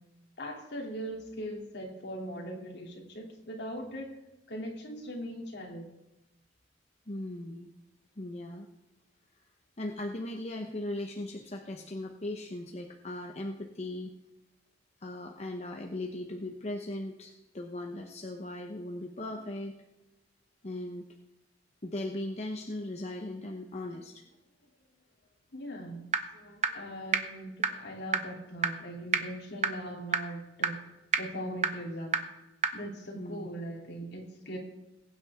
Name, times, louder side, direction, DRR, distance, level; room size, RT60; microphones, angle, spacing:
voice 1, 0.4-4.2 4.5-5.9 23.9-24.0 25.5-26.0 26.3-30.8 31.2-32.2 32.7-34.6, equal, 65° left, 0 dB, 3.0 m, -40 dB
voice 2, 7.1-7.7 8.2-8.7 9.8-14.1 15.0-19.7 20.6-21.1 21.8-24.2 33.1-33.8, left 1 dB, 35° left, 3 dB, 0.9 m, -38 dB
sound 1, 26.1-26.2 26.6-26.7 27.1-27.2 27.6-27.7 28.1-28.2 28.6-28.7 29.1-29.2 29.6-29.7 30.1-30.2 30.6-30.7 31.1-31.2 31.6-31.7 32.1-32.2 32.6-32.7, right 6 dB, 40° right, 0.9 m, -24 dB
21.0 x 9.2 x 3.6 m, 0.95 s
head